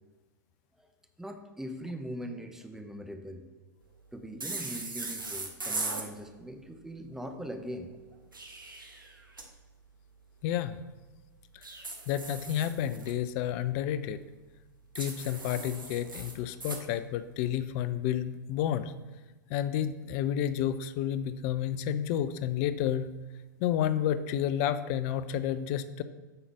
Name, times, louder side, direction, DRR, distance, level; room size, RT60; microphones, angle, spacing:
voice 1, 1.2-3.5 4.1-7.9, equal, 5° right, 6 dB, 0.7 m, -41 dB
sound 1, 4.4-6.1 8.1-9.5 11.6-13.1 15.0-16.8, right 3 dB, 85° right, 0.9 m, -39 dB
voice 2, 10.4-10.8 11.5-11.7 12.1-14.2 14.9-18.9 19.5-23.1 23.6-26.0, left 10 dB, 45° left, 13 dB, 0.5 m, -30 dB
7.9 x 3.9 x 5.4 m, 1.2 s
figure-of-eight pair, 95°, 11 cm